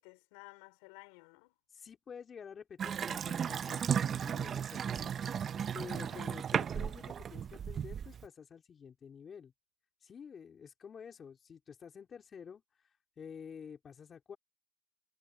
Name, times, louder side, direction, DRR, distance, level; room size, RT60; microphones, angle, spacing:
voice 1, 0.0-1.5 5.8-6.4, left 29 dB, 80° left, 4.9 m, -55 dB
voice 2, 1.7-5.1 5.7-9.5 10.0-14.4, left 7 dB, 30° left, 3.7 m, -50 dB
Water tap faucet / Sink (filling or washing) / Bathtub (filling or washing), 2.8-8.3, right 8 dB, 35° right, 0.6 m, -35 dB
supercardioid pair, 120°, 0 cm